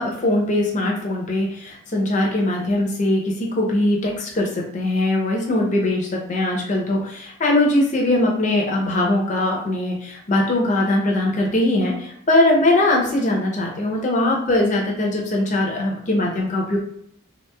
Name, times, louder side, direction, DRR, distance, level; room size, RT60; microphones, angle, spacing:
voice 1, 0.0-16.8, left 1 dB, 35° left, -1 dB, 0.6 m, -21 dB
2.9 x 2.5 x 2.3 m, 0.67 s
head